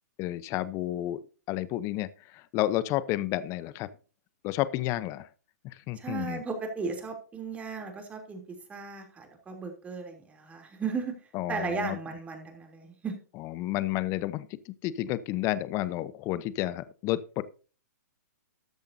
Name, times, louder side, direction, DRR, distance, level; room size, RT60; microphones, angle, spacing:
voice 1, 0.2-1.2 1.5-3.9 4.4-5.3 5.6-6.4 11.3-12.0 13.6-17.4, left 15 dB, 30° left, 17 dB, 0.8 m, -31 dB
voice 2, 5.9-8.4 8.7-13.2, right 5 dB, 15° right, 4 dB, 3.1 m, -36 dB
13.5 x 10.5 x 2.7 m, 0.36 s
hypercardioid pair, 125°, 9 cm